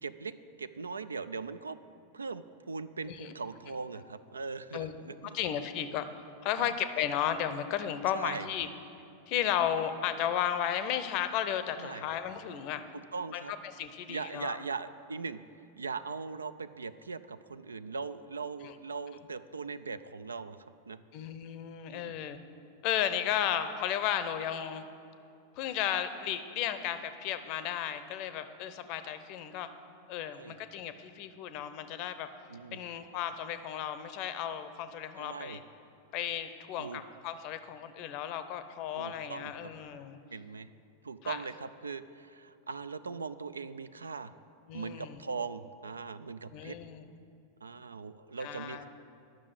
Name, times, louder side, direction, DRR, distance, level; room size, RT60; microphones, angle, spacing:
voice 1, 0.0-1.8 2.1-5.4 6.6-6.7 8.1-8.5 11.8-12.1 12.9-13.5 14.1-15.4 15.8-20.6 20.9-21.0 21.9-22.2 30.4-30.5 32.5-32.8 35.2-35.6 36.8-37.0 39.0-39.7 40.3-40.7 41.0-44.3 44.7-46.8 47.6-48.9, right 4 dB, 75° right, 14 dB, 0.3 m, -40 dB
voice 2, 5.3-6.1 6.4-8.7 9.3-12.8 13.3-13.4 13.7-14.6 18.6-18.7 21.1-22.4 22.8-24.8 25.6-29.7 30.1-32.3 32.7-35.6 36.1-40.2 41.2-41.4 44.7-45.2 46.5-47.1 48.4-48.9, left 10 dB, 45° left, 11 dB, 0.6 m, -34 dB
10.5 x 6.2 x 7.5 m, 2.6 s
figure-of-eight pair, 90°, 0 cm